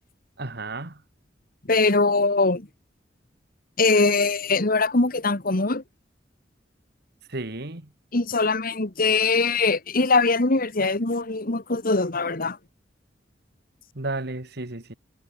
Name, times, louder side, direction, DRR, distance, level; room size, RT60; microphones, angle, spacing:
voice 1, 0.4-1.0 7.3-7.9 13.9-14.9, right 2 dB, 65° right, 2.3 m, -33 dB
voice 2, 1.7-2.7 3.8-5.8 8.1-12.6, left 3 dB, 50° left, 1.8 m, -22 dB
head